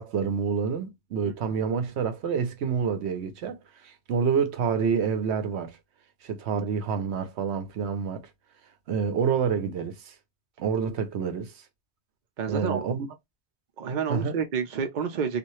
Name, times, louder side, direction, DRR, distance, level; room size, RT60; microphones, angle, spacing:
voice 1, 0.0-5.8 6.2-8.3 8.9-10.1 10.6-11.5 12.5-13.1 14.1-14.3, right 6 dB, 80° right, 0.9 m, -28 dB
voice 2, 1.2-1.6 12.4-12.9 13.8-15.4, right 6 dB, 55° right, 0.7 m, -30 dB
2.7 x 2.4 x 3.0 m
omnidirectional pair, 1.1 m